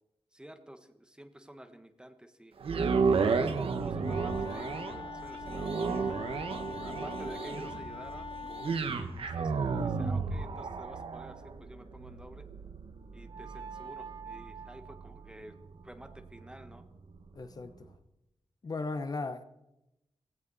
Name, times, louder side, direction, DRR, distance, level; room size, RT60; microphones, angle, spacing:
voice 1, 0.3-2.5 3.1-3.5 3.8-6.1 6.6-12.5 13.1-15.6 15.8-16.9, right 1 dB, 10° right, 1.3 m, -50 dB
sound 1, 2.6-16.8 17.3-17.4, right 5 dB, 80° right, 1.3 m, -33 dB
Wind instrument woodwind instrument, 4.0-8.9, left 5 dB, 70° left, 0.9 m, -43 dB
sound 2, 13.3-16.5, right 6 dB, 55° right, 0.8 m, -48 dB
voice 2, 17.3-17.9 18.6-19.4, left 3 dB, 45° left, 0.9 m, -36 dB
18.5 x 17.0 x 4.1 m
wide cardioid pair, 135°, 9 cm